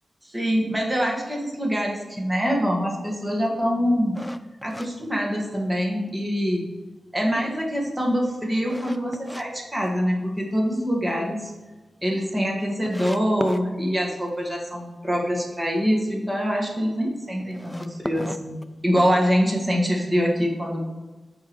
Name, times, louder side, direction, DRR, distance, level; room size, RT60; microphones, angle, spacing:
voice 1, 0.3-4.2 4.6-6.6 7.1-11.5 12.0-18.6 18.8-20.8, equal, 15° right, -1 dB, 1.6 m, -24 dB
sound 1, 4.1-5.9 6.3-6.4 6.9-9.5 9.8-10.6 10.9-11.0 11.4-11.5 11.7-11.8 12.4-12.5 12.9-13.6 17.4-19.2, left 1 dB, 5° left, 0.4 m, -37 dB
13.0 x 4.7 x 3.1 m, 1.2 s
wide cardioid pair, 105°, 0 cm